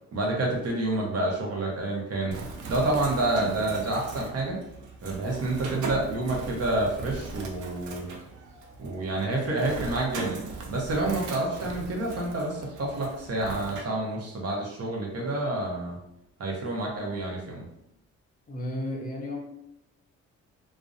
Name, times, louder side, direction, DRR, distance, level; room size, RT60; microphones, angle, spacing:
voice 1, 0.1-2.3 2.7-4.6 5.0-8.1 8.8-10.4 10.7-16.0 16.4-17.7, right 2 dB, 55° right, -2 dB, 0.8 m, -28 dB
Bird, 2.3-13.8, right 3 dB, 80° right, 0.5 m, -39 dB
voice 2, 18.5-19.4, left 1 dB, 30° left, -1 dB, 0.5 m, -33 dB
2.4 x 2.1 x 2.5 m, 0.78 s
cardioid pair, 90°, 30 cm